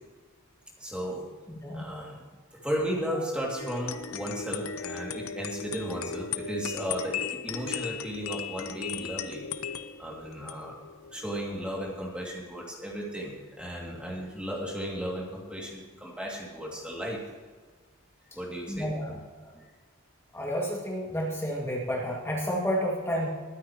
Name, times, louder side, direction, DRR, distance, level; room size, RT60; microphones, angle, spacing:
voice 1, 0.8-1.3 1.7-2.2 2.5-9.4 10.0-10.8 11.1-17.2 18.3-18.9, equal, 5° right, -3 dB, 2.6 m, -35 dB
voice 2, 1.5-1.9 18.7-19.1 20.3-23.3, equal, 10° left, -3 dB, 2.2 m, -30 dB
sound 1, 3.6-11.9, left 7 dB, 70° left, 0.8 m, -37 dB
21.5 x 9.8 x 3.1 m, 1.5 s
head